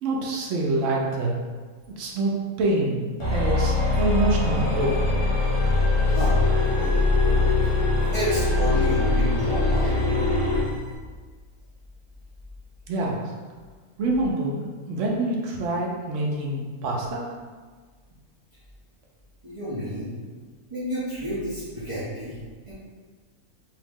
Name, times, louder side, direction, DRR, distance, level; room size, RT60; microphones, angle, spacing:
voice 1, 0.0-1.3 2.0-2.3 2.6-3.0 3.3-5.0 12.9-13.2 14.0-17.2, right 2 dB, 65° right, -2 dB, 0.8 m, -26 dB
sound 1, 3.2-10.7, left 2 dB, 25° left, 0.7 m, -22 dB
voice 2, 6.1-7.8 8.1-10.3 19.4-20.1 20.7-22.4 22.7-22.8, equal, 35° right, -12 dB, 0.5 m, -31 dB
3.0 x 2.8 x 3.5 m, 1.5 s
omnidirectional pair, 1.6 m